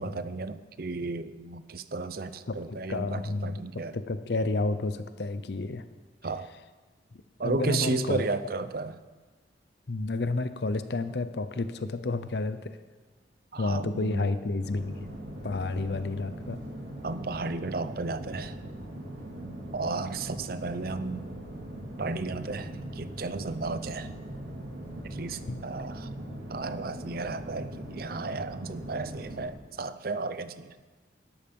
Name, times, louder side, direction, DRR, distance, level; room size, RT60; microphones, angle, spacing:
voice 1, 0.0-4.0 6.2-6.5 7.4-9.0 13.5-14.3 17.0-18.6 19.7-21.3 22.0-24.1 25.0-26.1 26.5-30.8, right 3 dB, 50° right, 12 dB, 0.6 m, -33 dB
voice 2, 2.5-3.6 3.9-5.8 7.4-8.2 9.9-12.8 13.6-15.1 15.4-16.6 25.5-25.6, left 3 dB, 65° left, 11 dB, 0.6 m, -30 dB
sound 1, 14.6-29.5, right 1 dB, 75° right, 3.7 m, -40 dB
12.0 x 12.0 x 5.3 m, 1.4 s
head